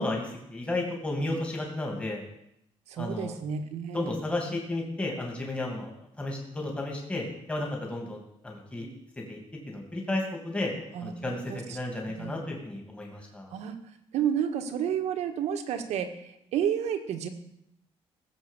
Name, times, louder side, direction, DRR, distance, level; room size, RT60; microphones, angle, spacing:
voice 1, 0.0-2.2 3.0-3.3 3.9-5.9 6.2-8.9 9.3-9.4 9.7-10.7 11.0-11.4 11.7-13.5, left 2 dB, 10° left, 0 dB, 2.7 m, -33 dB
voice 2, 2.9-4.1 10.9-11.8 12.2-12.3 13.5-13.8 14.1-17.3, right 8 dB, 90° right, 6 dB, 1.8 m, -31 dB
17.5 x 7.6 x 7.4 m, 0.78 s
cardioid pair, 160°, 11 cm